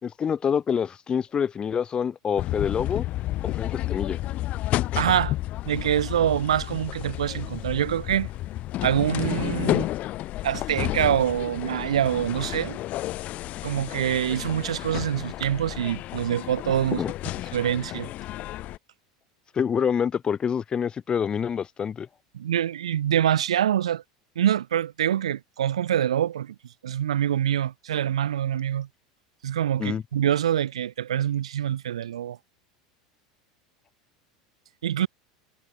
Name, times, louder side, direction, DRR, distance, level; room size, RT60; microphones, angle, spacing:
voice 1, 0.0-3.1 3.5-4.2 16.9-17.1 19.6-22.1 29.8-30.0, left 7 dB, 25° left, 2.0 m, -26 dB
sound 1, 2.4-18.8, left 15 dB, 45° left, 4.3 m, -31 dB
voice 2, 5.0-5.3 5.7-8.3 8.8-9.9 10.4-12.8 13.6-17.0 17.5-18.1 22.3-24.0 24.4-26.6 26.8-28.9 29.4-32.4 34.8-35.1, right 10 dB, 70° right, 2.1 m, -25 dB
figure-of-eight pair, 80°, 3 cm